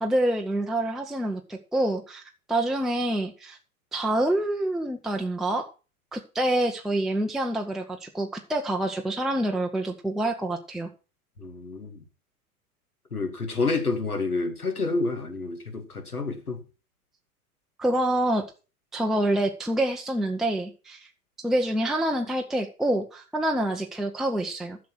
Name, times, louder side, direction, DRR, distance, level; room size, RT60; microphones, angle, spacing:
voice 1, 0.0-2.2 2.5-3.6 3.9-5.7 6.1-10.9 17.8-18.4 18.9-21.1 21.4-24.8, right 1 dB, ahead, 0.7 m, -27 dB
voice 2, 11.4-12.0 13.1-16.6, left 3 dB, 85° left, 2.6 m, -29 dB
11.5 x 6.5 x 6.2 m
figure-of-eight pair, 100°, 44 cm